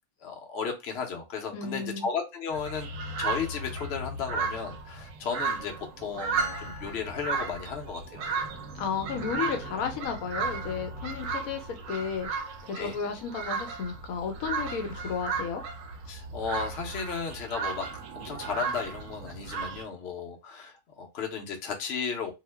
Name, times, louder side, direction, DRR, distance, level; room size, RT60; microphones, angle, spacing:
voice 1, 0.2-2.9 3.2-8.3 12.7-13.0 16.1-17.9 18.1-22.3, left 6 dB, 55° left, 0.9 m, -34 dB
voice 2, 1.5-2.1 8.8-12.3 12.7-15.6, left 6 dB, 80° left, 1.1 m, -33 dB
sound 1, 2.5-19.8, right 4 dB, 70° right, 0.9 m, -35 dB
sound 2, 6.4-8.1, left 6 dB, 25° left, 1.1 m, -46 dB
2.9 x 2.0 x 3.3 m
omnidirectional pair, 1.5 m